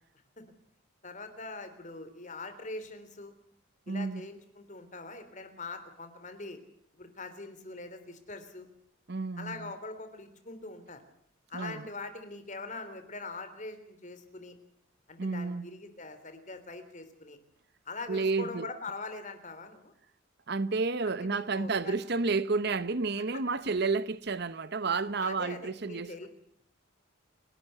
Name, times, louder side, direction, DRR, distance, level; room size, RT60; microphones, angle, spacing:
voice 1, 1.0-3.3 3.9-6.6 6.9-8.7 9.4-11.0 11.5-14.6 15.1-17.4 17.8-19.9 21.0-22.0 25.2-26.3, left 3 dB, 35° left, 3.4 m, -43 dB
voice 2, 3.9-4.2 9.1-9.7 11.5-11.9 15.2-15.7 18.1-18.7 20.5-26.1, right 4 dB, 50° right, 0.8 m, -31 dB
29.5 x 12.0 x 8.1 m
head